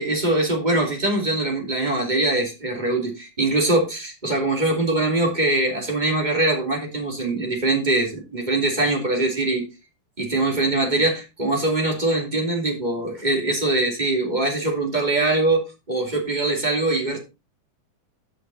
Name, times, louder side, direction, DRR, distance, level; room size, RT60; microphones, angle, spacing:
voice 1, 0.0-9.7 10.2-17.2, right 2 dB, 15° right, 1 dB, 2.4 m, -22 dB
13.0 x 6.0 x 4.1 m, 0.28 s
omnidirectional pair, 3.9 m